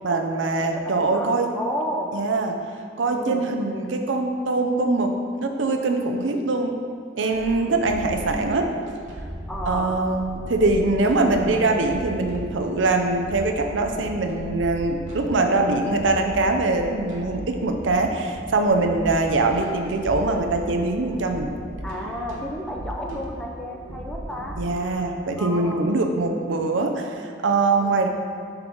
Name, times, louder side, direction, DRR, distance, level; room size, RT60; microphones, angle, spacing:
voice 1, 0.0-1.5 2.1-2.6 3.0-5.1 5.4-6.8 7.2-8.7 9.7-21.5 24.6-28.1, right 3 dB, 75° right, 4 dB, 0.6 m, -23 dB
voice 2, 0.6-2.1 3.1-3.5 7.1-7.8 9.5-9.9 21.8-24.6 25.4-25.8 27.8-28.1, equal, 5° left, -1 dB, 0.6 m, -32 dB
sound 1, 7.3-24.9, equal, 90° right, 1.2 m, -37 dB
5.2 x 4.5 x 5.4 m, 2.3 s
head